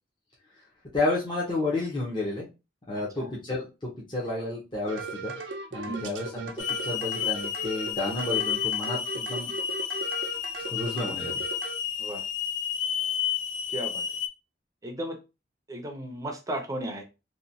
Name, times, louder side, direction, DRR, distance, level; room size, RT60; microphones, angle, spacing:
voice 1, 0.9-2.5 2.9-3.7 4.1-5.4 5.7-9.5 10.7-11.4, left 2 dB, 25° left, -5 dB, 0.7 m, -31 dB
voice 2, 2.9-3.3 5.9-6.1 12.0-12.2 13.7-14.0 14.8-15.2 15.7-17.0, right 1 dB, 20° right, 3 dB, 0.5 m, -35 dB
sound 1, 4.9-11.8, right 4 dB, 70° right, 0.5 m, -38 dB
Hiss / Alarm, 6.6-14.3, left 9 dB, 75° left, 0.4 m, -31 dB
2.9 x 2.2 x 2.6 m, 0.27 s
head